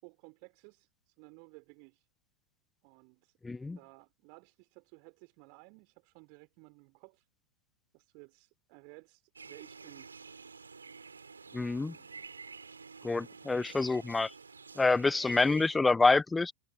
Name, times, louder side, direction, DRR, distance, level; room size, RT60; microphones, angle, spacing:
voice 1, 0.0-2.1 2.8-3.4 3.8-7.3 7.9-10.1, right 40 dB or more, 45° right, 4.4 m, -56 dB
voice 2, 3.4-3.8 11.5-11.9 13.0-14.3 14.8-16.5, left 3 dB, 10° left, 0.7 m, -27 dB
sound 1, 9.4-15.8, right 5 dB, 75° right, 7.6 m, -50 dB
figure-of-eight pair, 90°, 0 cm